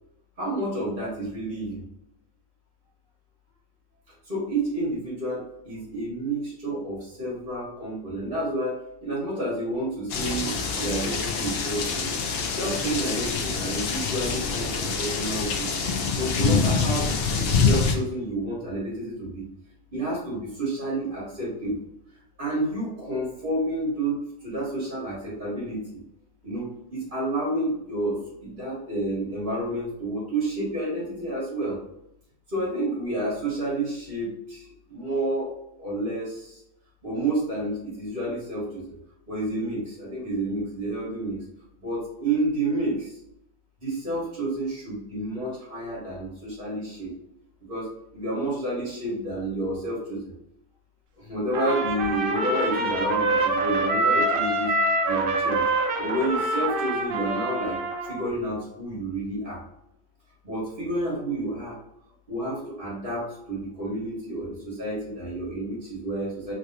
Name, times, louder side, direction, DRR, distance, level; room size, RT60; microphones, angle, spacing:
voice 1, 0.4-1.8 4.2-12.2 12.5-15.7 16.2-17.1 17.5-19.4 19.9-21.8 22.4-26.0 26.4-31.8 32.5-35.5 35.8-36.6 37.0-39.0 39.3-41.4 41.8-43.2 43.8-47.1 47.7-50.3 51.2-54.8 55.0-55.7 56.0-57.8 58.1-59.6 60.4-61.8 62.3-66.5, right 1 dB, 40° right, -7 dB, 1.4 m, -30 dB
sound 1, 10.1-17.9, left 5 dB, 65° left, 0.6 m, -26 dB
Trumpet, 51.5-58.3, right 2 dB, 60° right, 0.6 m, -25 dB
3.2 x 2.7 x 2.5 m, 0.80 s
omnidirectional pair, 1.4 m